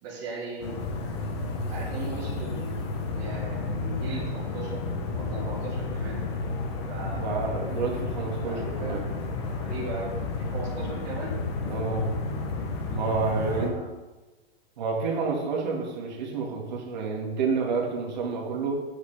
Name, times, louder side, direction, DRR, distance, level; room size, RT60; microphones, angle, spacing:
voice 1, 0.0-0.8 1.7-2.7 3.1-4.8 5.1-6.2 6.9-7.4 8.4-11.4 11.8-12.0 13.3-13.8, right 3 dB, 20° right, -6 dB, 1.4 m, -38 dB
sound 1, 0.6-13.7, left 3 dB, 25° left, 0.8 m, -31 dB
voice 2, 7.1-9.0 11.7-12.0 12.9-13.8 14.8-18.8, right 4 dB, 45° right, 0 dB, 2.0 m, -29 dB
9.3 x 8.4 x 3.4 m, 1.2 s
hypercardioid pair, 170°, 32 cm